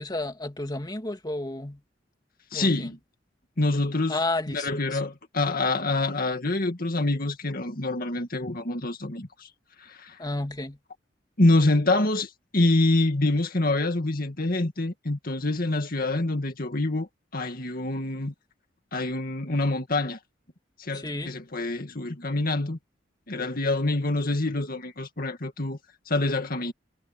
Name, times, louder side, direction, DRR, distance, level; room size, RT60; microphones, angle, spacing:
voice 1, 0.0-1.8 2.5-2.9 4.1-5.0 10.2-10.8 20.9-21.3, left 2 dB, 20° left, 2.4 m, -32 dB
voice 2, 2.5-3.0 3.6-4.2 4.5-9.5 9.8-10.2 11.4-18.3 18.9-20.2 20.8-22.8 23.3-25.8 26.1-26.7, left 2 dB, 50° left, 2.2 m, -26 dB
head